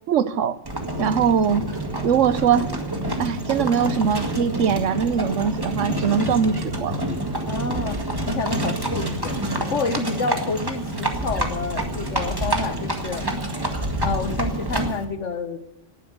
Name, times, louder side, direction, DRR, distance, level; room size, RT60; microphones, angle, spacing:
voice 1, 0.1-0.6 1.0-1.7 2.0-2.7 3.2-7.0, right 7 dB, 85° right, 15 dB, 1.2 m, -21 dB
Livestock farm animals working animals, 0.7-15.0, right 1 dB, 20° right, 1.9 m, -27 dB
voice 2, 7.5-8.0 8.3-9.4 9.7-13.3 14.0-15.6, left 3 dB, 75° left, 9 dB, 1.6 m, -28 dB
19.0 x 10.0 x 6.7 m, 0.79 s
omnidirectional pair, 1.2 m